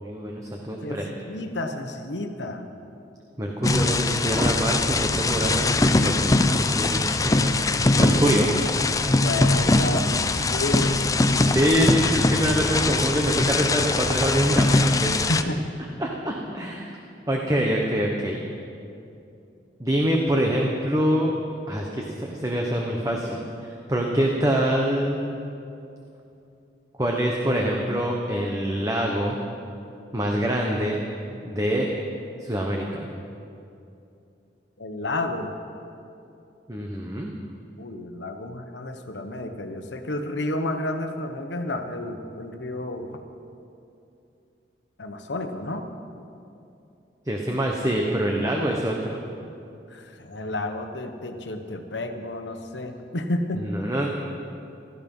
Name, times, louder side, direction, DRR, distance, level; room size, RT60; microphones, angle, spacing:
voice 1, 0.0-1.1 3.4-7.6 8.0-8.5 11.5-15.1 16.0-17.0 17.3-18.4 19.8-21.3 21.7-25.2 27.0-29.4 30.1-31.0 31.4-31.9 32.4-33.1 36.7-37.3 47.3-49.2 53.6-54.1, equal, 20° right, 0 dB, 1.1 m, -25 dB
voice 2, 0.8-2.7 9.2-11.2 15.2-15.6 34.8-35.5 37.8-43.2 45.0-45.8 49.9-53.6, left 2 dB, 80° left, 6 dB, 1.2 m, -31 dB
sound 1, 3.6-15.4, left 2 dB, 20° left, 0.5 m, -22 dB
17.0 x 13.0 x 5.5 m, 2.7 s
head